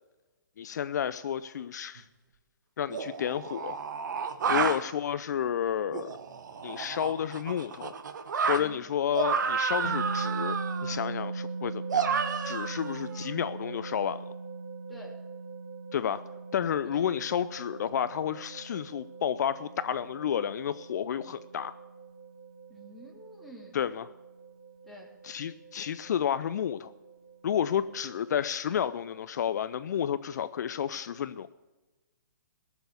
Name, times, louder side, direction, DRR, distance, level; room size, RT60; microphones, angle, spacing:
voice 1, 0.6-2.1 2.8-3.8 4.5-6.2 6.6-7.9 8.5-12.1 12.4-14.3 15.9-16.2 16.5-21.7 23.7-24.1 25.2-26.9 27.4-31.5, left 9 dB, 60° left, 14 dB, 0.5 m, -31 dB
sound 1, 2.0-2.1 2.9-4.8 5.9-8.6 9.1-11.0 11.9-13.2, right 6 dB, 65° right, 1.2 m, -31 dB
sound 2, 9.8-29.2, right 4 dB, 30° right, 2.3 m, -41 dB
voice 2, 22.7-23.8 24.8-25.1 27.7-27.8, left 1 dB, ahead, -3 dB, 2.5 m, -49 dB
16.5 x 7.0 x 6.6 m, 1.2 s
hypercardioid pair, 140°, 11 cm